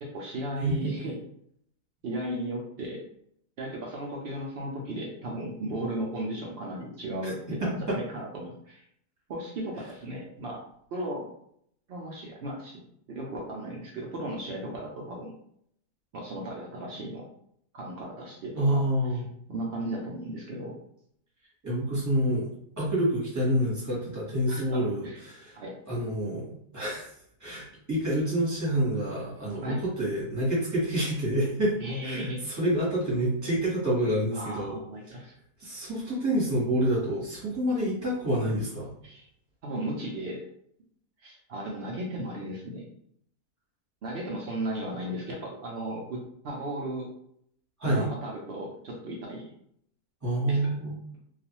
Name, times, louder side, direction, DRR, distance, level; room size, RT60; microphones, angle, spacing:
voice 1, 0.0-1.2 2.0-3.0 3.6-8.9 9.3-10.6 10.9-11.3 11.9-12.8 13.1-15.3 16.1-17.2 17.7-18.8 19.1-19.2 19.5-20.7 24.5-25.2 25.5-25.7 29.6-29.8 31.8-32.4 34.3-35.3 39.0-39.3 39.6-40.4 41.2-42.9 44.0-47.1 47.8-49.5 50.5-50.8, right 1 dB, 85° right, -2 dB, 0.5 m, -35 dB
voice 2, 0.6-0.9 7.2-7.3 7.6-8.0 18.5-19.2 21.6-22.5 22.8-25.6 25.9-26.4 26.7-27.1 27.4-31.7 32.0-34.8 35.6-38.9 47.8-48.1 50.2-51.0, right 1 dB, 15° right, -6 dB, 0.9 m, -27 dB
2.4 x 2.3 x 2.9 m, 0.69 s
omnidirectional pair, 1.6 m